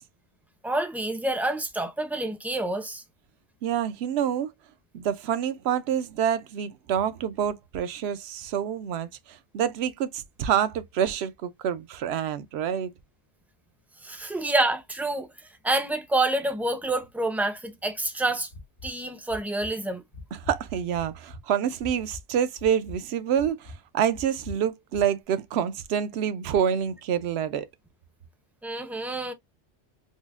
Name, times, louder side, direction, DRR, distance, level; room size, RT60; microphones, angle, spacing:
voice 1, 0.6-3.0 14.0-15.3 15.6-18.5 18.8-20.0 28.6-29.3, right 2 dB, ahead, 0.4 m, -27 dB
voice 2, 3.6-4.5 4.9-12.9 20.3-27.7, right 9 dB, 70° right, 0.8 m, -27 dB
sound 1, 18.5-19.0 19.3-19.7 20.1-20.6 21.0-21.4 21.8-22.2 22.6-23.0 23.4-23.8 24.1-24.6 24.9-25.0, left 2 dB, 90° left, 2.2 m, -41 dB
5.4 x 2.1 x 2.3 m
omnidirectional pair, 1.1 m